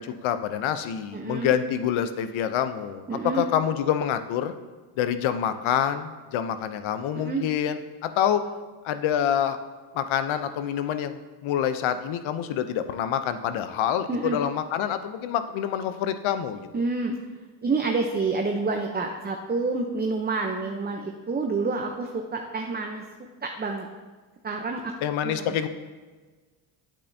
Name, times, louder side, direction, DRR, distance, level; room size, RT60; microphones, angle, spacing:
voice 1, 0.0-4.5 5.0-8.4 8.8-9.6 9.9-16.7 25.0-25.7, left 9 dB, 70° left, 10 dB, 0.7 m, -27 dB
voice 2, 1.1-1.5 3.1-3.4 7.1-7.4 14.1-14.4 16.7-17.2 17.6-23.0 23.4-23.9 24.4-24.9 25.2-25.6, right 3 dB, 20° right, 2 dB, 0.7 m, -28 dB
8.5 x 8.5 x 2.7 m, 1.4 s
cardioid pair, 75°, 49 cm